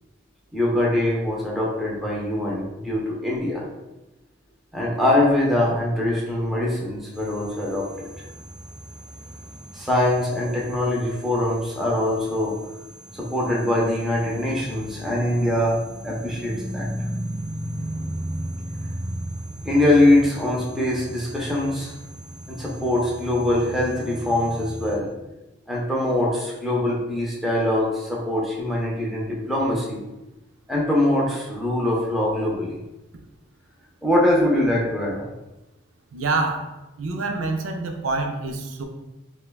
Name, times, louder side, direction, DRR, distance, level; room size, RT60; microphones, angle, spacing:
voice 1, 0.5-3.6 4.7-7.9 9.7-12.6 13.1-16.9 19.6-21.9 22.5-25.1 25.7-30.0 30.7-32.8 34.0-35.2, left 1 dB, ahead, -4 dB, 0.6 m, -23 dB
sound 1, 7.1-25.0, right 1 dB, 40° right, 0.9 m, -36 dB
voice 2, 36.1-36.7 37.0-38.8, right 3 dB, 80° right, 3 dB, 0.5 m, -26 dB
5.7 x 2.2 x 2.2 m, 1.0 s
head